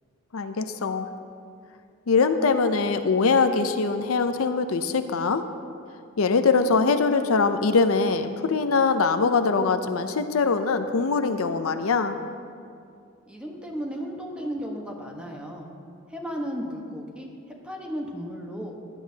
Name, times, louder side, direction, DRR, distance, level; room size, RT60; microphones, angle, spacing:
voice 1, 0.3-1.1 2.1-5.4 6.2-12.2, left 4 dB, 75° left, 9 dB, 0.6 m, -22 dB
voice 2, 13.2-15.7 16.1-17.3 17.6-18.8, equal, 5° right, 0 dB, 1.2 m, -34 dB
16.5 x 10.5 x 2.8 m, 2.4 s
head